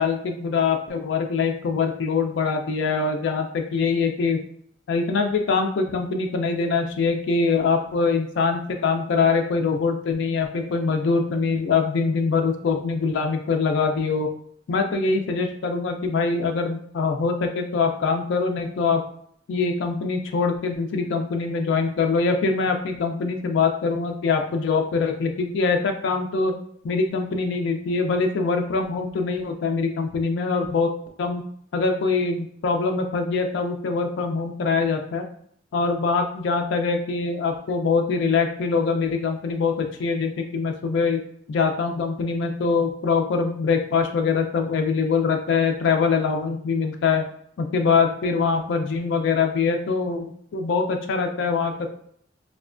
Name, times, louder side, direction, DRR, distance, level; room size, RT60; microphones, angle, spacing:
voice 1, 0.0-4.4 4.9-14.3 14.7-19.0 19.5-26.5 26.8-30.9 31.2-31.4 31.7-35.2 35.7-41.2 41.5-47.2 47.6-51.9, left 4 dB, 65° left, 5 dB, 0.3 m, -23 dB
2.9 x 2.1 x 2.4 m, 0.63 s
head